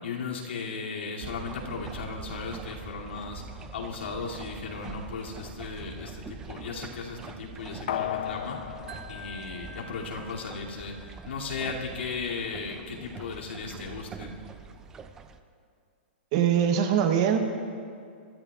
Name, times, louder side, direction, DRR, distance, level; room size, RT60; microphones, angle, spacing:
voice 1, 0.0-3.4 3.7-8.6 9.1-14.4, left 4 dB, 80° left, -3 dB, 2.6 m, -36 dB
sound 1, 1.2-15.4, right 5 dB, 10° right, 0.3 m, -44 dB
sound 2, 7.9-10.4 10.8-10.9, left 10 dB, 55° left, 0.6 m, -35 dB
Wind chime, 8.9-12.0, right 1 dB, 80° right, 2.3 m, -49 dB
voice 2, 16.3-17.4, right 8 dB, 30° right, 6 dB, 0.9 m, -23 dB
24.5 x 14.0 x 2.4 m, 2.3 s
hypercardioid pair, 175°, 6 cm